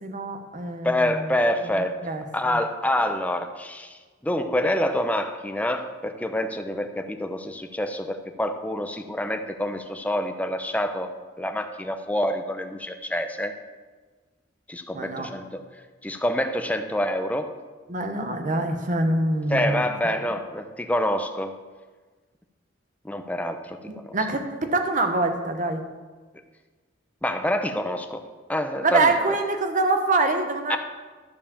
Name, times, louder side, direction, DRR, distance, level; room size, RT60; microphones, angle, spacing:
voice 1, 0.0-1.3 1.6-2.6 14.9-15.3 17.9-19.8 23.9-25.8 28.8-30.8, right 2 dB, 45° right, 6 dB, 1.1 m, -25 dB
voice 2, 0.8-2.0 2.3-11.1 11.4-13.5 14.7-15.6 16.0-17.5 19.5-21.5 23.0-24.1 27.2-28.2 28.5-29.1 30.7-30.8, left 1 dB, 10° left, 6 dB, 0.7 m, -27 dB
12.5 x 4.8 x 7.1 m, 1.4 s
head